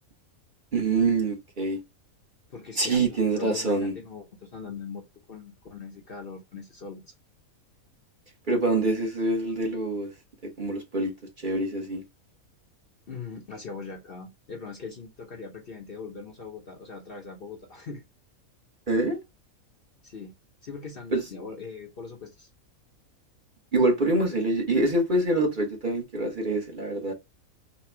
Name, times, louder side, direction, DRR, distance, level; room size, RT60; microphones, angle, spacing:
voice 1, 0.7-1.8 2.8-3.9 8.5-10.1 10.4-11.1 11.4-12.0 18.9-19.2 21.1-21.2 23.7-27.1, right 2 dB, 35° right, 1.2 m, -25 dB
voice 2, 2.5-7.1 13.1-18.0 20.0-20.3 20.6-22.5, left 5 dB, 45° left, 1.0 m, -41 dB
4.2 x 2.3 x 4.4 m
omnidirectional pair, 1.5 m